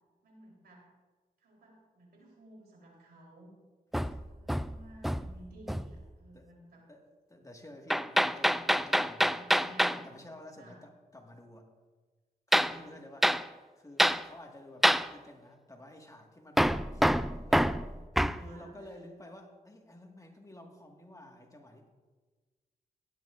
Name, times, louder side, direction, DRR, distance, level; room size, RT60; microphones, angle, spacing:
voice 1, 0.2-0.9 1.4-3.6 4.1-6.8 8.1-8.5 9.2-10.0 10.6-10.8 12.6-13.0 18.4-19.0, right 1 dB, 85° right, -2 dB, 3.6 m, -55 dB
Hammer, 3.9-5.4 5.7-6.0 7.9-10.0 12.5-12.8 13.2-13.4 14.0-14.2 14.8-15.1 16.6-18.4, equal, ahead, 0.3 m, -26 dB
voice 2, 7.3-9.4 9.9-11.7 12.5-13.3 13.7-17.8 18.3-21.9, left 1 dB, 20° left, 2 dB, 1.7 m, -51 dB
16.5 x 10.5 x 2.5 m, 1.3 s
cardioid pair, 65°, 16 cm